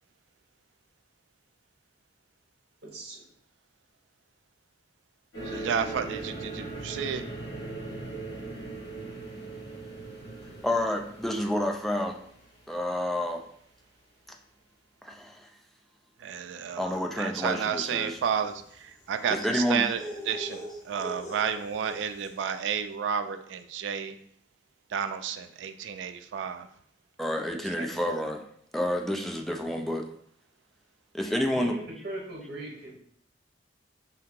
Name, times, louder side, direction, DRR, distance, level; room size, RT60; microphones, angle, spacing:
voice 1, 2.8-3.2 31.5-33.0, right 1 dB, 60° right, -2 dB, 0.8 m, -39 dB
sound 1, 5.3-12.7, right 2 dB, 90° left, 1.1 m, -39 dB
voice 2, 5.4-7.3 16.2-24.2 24.9-26.7 27.8-28.0, right 7 dB, 80° right, 10 dB, 0.3 m, -31 dB
voice 3, 10.6-12.2 12.7-13.4 15.0-15.5 16.8-18.2 19.3-19.8 27.2-28.4 28.7-30.1 31.1-31.7, left 1 dB, ahead, 2 dB, 0.3 m, -29 dB
sound 2, 17.9-22.5, equal, 40° left, 1.0 m, -43 dB
2.8 x 2.7 x 3.6 m, 0.66 s
head